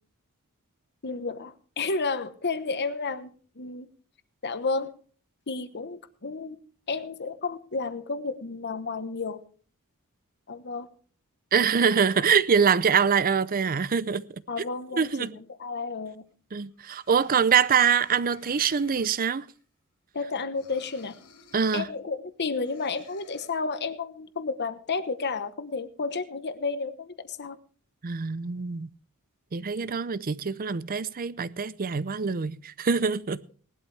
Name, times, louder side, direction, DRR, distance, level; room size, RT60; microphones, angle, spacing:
voice 1, 1.0-3.3 3.6-3.9 4.4-4.9 5.5-6.6 6.9-9.4 10.5-10.9 14.5-16.2 20.1-21.1 21.7-27.6, left 4 dB, 50° left, 1.1 m, -32 dB
voice 2, 11.5-14.3 14.9-15.4 16.5-19.5 21.5-21.9 28.0-28.9 29.5-33.4, right 6 dB, 40° right, 0.6 m, -24 dB
sound 1, 16.3-16.4 16.8-19.6 20.5-21.9 22.6-23.5, left 4 dB, 85° left, 2.1 m, -54 dB
19.0 x 12.0 x 3.3 m
head